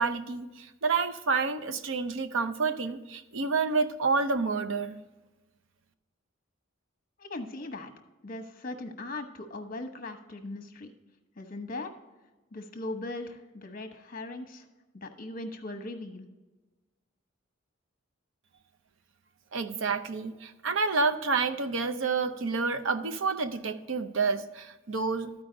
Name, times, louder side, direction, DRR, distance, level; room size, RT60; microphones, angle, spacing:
voice 1, 0.0-5.0 19.5-25.3, right 4 dB, 80° right, 10 dB, 0.6 m, -29 dB
voice 2, 7.2-7.9 8.2-10.9 11.4-11.9 12.5-14.7 14.9-16.3, left 2 dB, 45° left, 6 dB, 1.0 m, -39 dB
13.5 x 4.8 x 3.9 m, 1.1 s
head